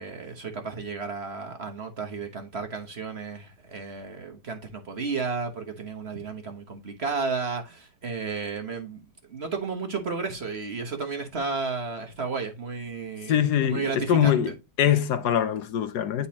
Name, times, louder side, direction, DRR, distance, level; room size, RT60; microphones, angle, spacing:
voice 1, 0.0-14.5, right 4 dB, 45° right, 1.1 m, -33 dB
voice 2, 13.3-14.5 14.8-16.3, left 10 dB, 70° left, 1.2 m, -23 dB
10.0 x 4.2 x 2.8 m
omnidirectional pair, 1.9 m